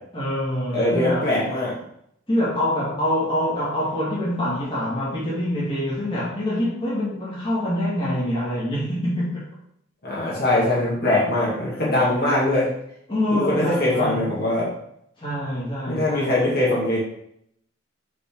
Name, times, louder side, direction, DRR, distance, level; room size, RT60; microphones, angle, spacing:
voice 1, 0.1-1.3 2.3-9.4 13.1-14.3 15.2-16.3, left 1 dB, 25° left, -8 dB, 2.2 m, -25 dB
voice 2, 0.7-1.7 10.0-12.7 13.3-14.7 15.9-17.0, left 1 dB, 50° left, -6 dB, 2.1 m, -22 dB
7.6 x 3.8 x 3.9 m, 0.72 s
head